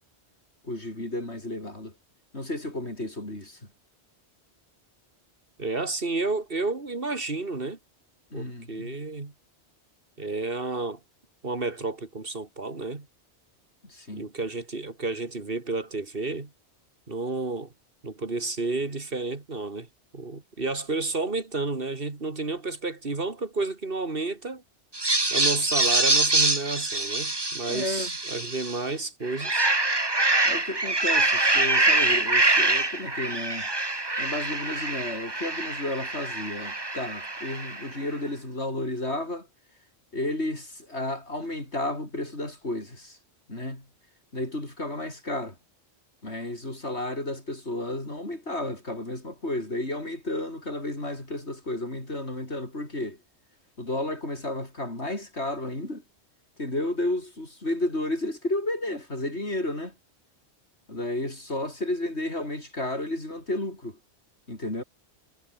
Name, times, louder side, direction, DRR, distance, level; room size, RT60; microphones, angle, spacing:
voice 1, 0.6-1.9 2.3-3.6 8.3-9.0 13.8-14.3 27.7-28.1 30.5-33.7 34.2-39.5 40.1-43.2 43.5-43.8 44.3-45.6 46.2-53.2 53.8-56.0 56.6-59.9 60.9-64.0 64.5-64.8, left 1 dB, 75° left, 7.1 m, -32 dB
voice 2, 5.6-7.8 8.3-9.3 10.2-11.0 11.4-13.1 14.1-16.5 17.1-17.7 18.0-19.9 20.1-24.6 25.3-29.7, right 3 dB, 55° right, 2.7 m, -31 dB
sound 1, 24.9-28.8 29.2-37.9, right 2 dB, 20° right, 1.7 m, -25 dB
omnidirectional pair, 1.1 m